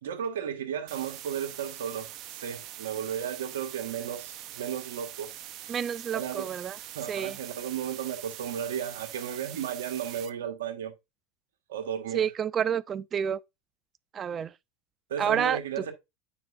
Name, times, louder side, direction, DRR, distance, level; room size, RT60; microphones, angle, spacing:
voice 1, 0.0-5.3 6.1-6.5 6.9-10.9 11.7-12.2 15.1-15.9, right 8 dB, 85° right, 1.5 m, -34 dB
sound 1, 0.9-10.3, right 12 dB, 50° right, 0.8 m, -43 dB
voice 2, 5.7-6.8 7.1-7.4 12.1-13.4 14.1-14.5 15.2-15.6, right 8 dB, 30° right, 0.4 m, -29 dB
9.2 x 5.2 x 2.5 m
hypercardioid pair, 105°, 0 cm